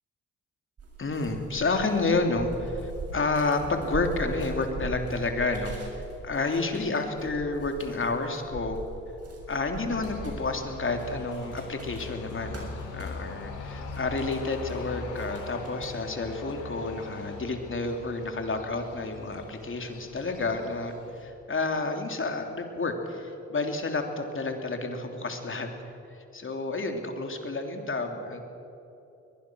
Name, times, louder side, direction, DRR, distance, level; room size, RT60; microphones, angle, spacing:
sound 1, 0.8-14.8 15.1-15.9, right 3 dB, 55° right, 7.1 m, -41 dB
voice 1, 1.0-8.8 9.5-25.7 26.1-28.4, left 3 dB, 40° left, 4 dB, 3.3 m, -30 dB
sound 2, 9.9-21.2, left 4 dB, 85° left, 2.9 m, -41 dB
22.0 x 20.5 x 6.4 m, 2.9 s
supercardioid pair, 55°, 30 cm